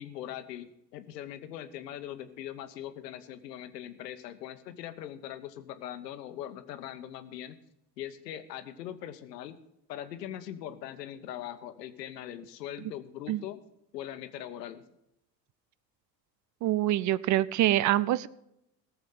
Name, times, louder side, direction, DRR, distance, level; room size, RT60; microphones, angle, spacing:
voice 1, 0.0-7.6 8.0-9.6 9.9-13.6 13.9-14.8, left 11 dB, 80° left, 10 dB, 1.1 m, -41 dB
voice 2, 16.6-18.3, right 14 dB, 40° right, 20 dB, 0.5 m, -25 dB
17.5 x 7.3 x 5.8 m, 0.81 s
hypercardioid pair, 70°, 48 cm